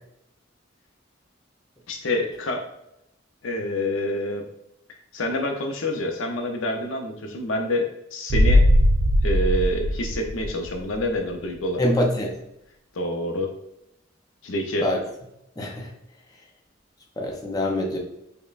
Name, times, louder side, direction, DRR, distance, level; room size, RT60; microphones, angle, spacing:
voice 1, 1.9-2.6 3.4-4.5 5.1-8.7 9.2-11.9 12.9-13.5 14.4-14.9, left 1 dB, 80° left, 3 dB, 0.6 m, -27 dB
sound 1, 8.3-11.0 11.3-11.4, equal, 50° right, 0.4 m, -20 dB
voice 2, 11.8-12.3 14.8-15.0 15.6-15.9 17.2-18.0, left 1 dB, 20° left, 0 dB, 0.5 m, -24 dB
5.2 x 2.1 x 2.4 m, 0.82 s
head